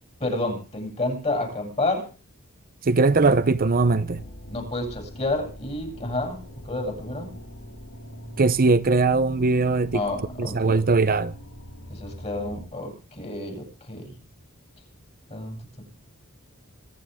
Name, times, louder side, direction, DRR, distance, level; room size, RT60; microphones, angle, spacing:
voice 1, 0.2-2.1 4.5-7.4 9.9-10.8 11.9-14.1 15.3-15.6, left 2 dB, 30° left, 8.0 m, -30 dB
voice 2, 2.8-4.2 8.4-10.0 10.4-11.3, right 3 dB, 40° right, 0.7 m, -20 dB
sound 1, 3.1-12.6, equal, 80° left, 4.8 m, -42 dB
26.0 x 11.5 x 3.6 m
head